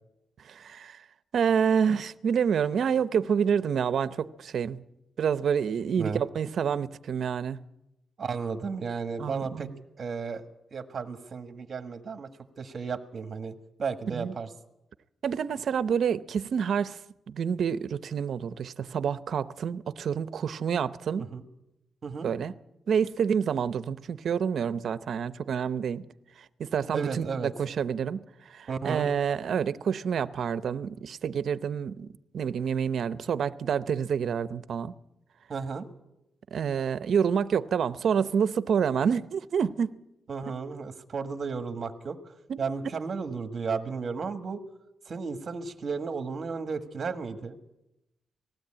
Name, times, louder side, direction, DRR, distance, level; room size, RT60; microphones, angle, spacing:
voice 1, 0.4-1.0 1.3-4.8 5.2-7.6 9.2-9.7 14.1-14.3 15.2-17.0 17.3-21.2 22.2-22.5 22.9-26.1 26.6-28.2 28.5-32.1 32.3-34.9 36.5-40.0 42.5-42.6, right 7 dB, 60° right, 0.6 m, -28 dB
voice 2, 8.2-9.7 10.0-10.4 10.7-12.3 12.6-13.5 13.8-14.5 21.3-21.4 22.0-22.3 26.9-27.5 28.7-29.1 35.5-35.9 40.3-42.2 42.6-44.6 45.1-47.6, right 5 dB, 40° right, 1.5 m, -33 dB
19.5 x 16.0 x 8.7 m
wide cardioid pair, 160°, 0 cm